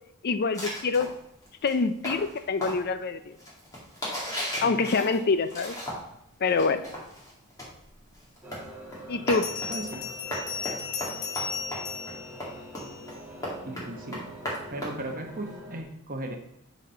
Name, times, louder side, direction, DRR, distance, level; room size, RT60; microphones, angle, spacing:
voice 1, 0.2-1.1 1.6-3.2 4.6-5.7 6.4-6.8 9.1-9.5, left 4 dB, 45° left, 11 dB, 0.5 m, -25 dB
sound 1, 0.5-6.2 6.5-15.5, equal, 15° left, 2.3 m, -37 dB
Bell, 8.1-8.2 9.3-13.2, left 6 dB, 65° left, 2.1 m, -36 dB
sound 2, 8.4-15.8, right 1 dB, 10° right, 1.4 m, -45 dB
voice 2, 9.7-10.0 13.6-14.2 14.7-16.4, right 1 dB, 40° right, 4 dB, 1.1 m, -36 dB
9.1 x 4.2 x 4.3 m, 0.81 s
head